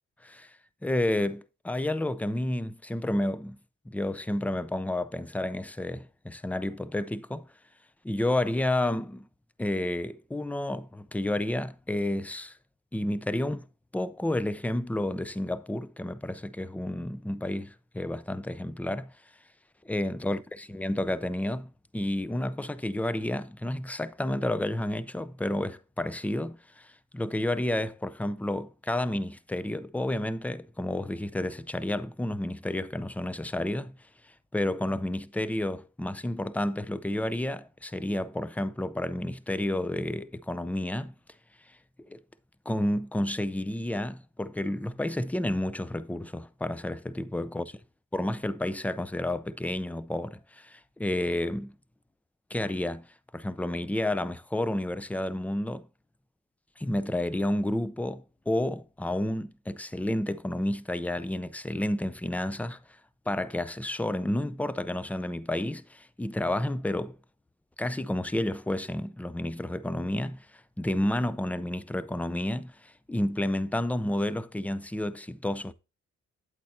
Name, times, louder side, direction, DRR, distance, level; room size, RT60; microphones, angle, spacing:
voice 1, 0.2-0.6 0.8-3.6 3.9-7.5 8.0-9.3 9.6-12.6 12.9-13.7 13.9-19.1 19.8-34.0 34.5-41.1 42.1-42.2 42.7-47.7 48.1-51.7 52.5-53.1 53.3-55.9 56.8-62.8 63.3-67.2 67.8-75.7, left 1 dB, 5° left, 0.5 m, -30 dB
8.7 x 8.4 x 2.7 m
cardioid pair, 90°, 30 cm